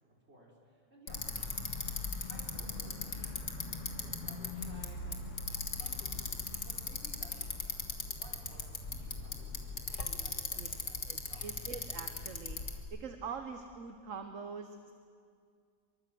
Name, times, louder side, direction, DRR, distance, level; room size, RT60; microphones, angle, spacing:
voice 1, 0.2-1.2 2.3-3.5 3.8-5.2 5.7-7.8 8.1-11.8, right 1 dB, 45° right, -2 dB, 5.6 m, -57 dB
Bicycle, 1.1-12.8, left 3 dB, 55° left, 2.2 m, -39 dB
voice 2, 11.1-14.9, right 5 dB, 60° right, 7 dB, 1.4 m, -44 dB
24.0 x 23.5 x 7.8 m, 2.2 s
omnidirectional pair, 1.6 m